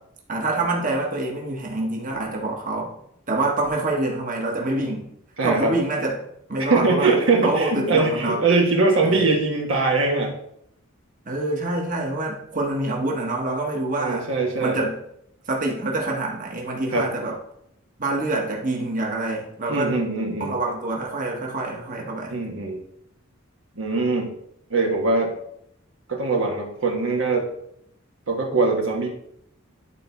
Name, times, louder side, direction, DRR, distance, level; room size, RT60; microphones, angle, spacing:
voice 1, 0.3-2.9 3.3-5.1 5.4-6.2 6.5-8.4 9.0-9.2 11.3-14.2 14.6-15.0 15.5-17.3 18.0-20.0 20.4-22.3, right 2 dB, 40° right, -1 dB, 1.5 m, -26 dB
voice 2, 5.4-5.8 6.7-10.4 14.0-14.8 16.9-17.1 19.7-20.5 22.3-22.8 23.8-24.3 24.7-25.3 26.1-27.5 28.3-29.1, right 3 dB, 70° right, 1 dB, 1.4 m, -22 dB
10.5 x 4.2 x 4.6 m, 0.73 s
head